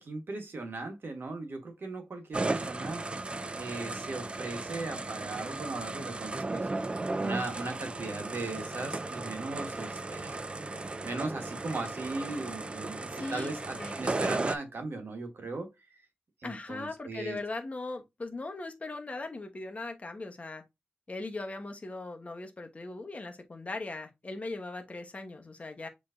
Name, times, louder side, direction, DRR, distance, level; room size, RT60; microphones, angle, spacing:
voice 1, 0.0-3.0 3.6-6.7 7.2-10.4 11.0-15.7 16.4-17.4, right 3 dB, 65° right, 1.3 m, -38 dB
sound 1, 2.3-14.6, right 2 dB, 30° right, 0.4 m, -35 dB
voice 2, 9.6-10.0 13.1-13.5 13.8-13.9 16.4-20.6 21.1-25.9, left 2 dB, 35° left, 1.0 m, -39 dB
6.7 x 3.1 x 2.5 m
wide cardioid pair, 120°, 4 cm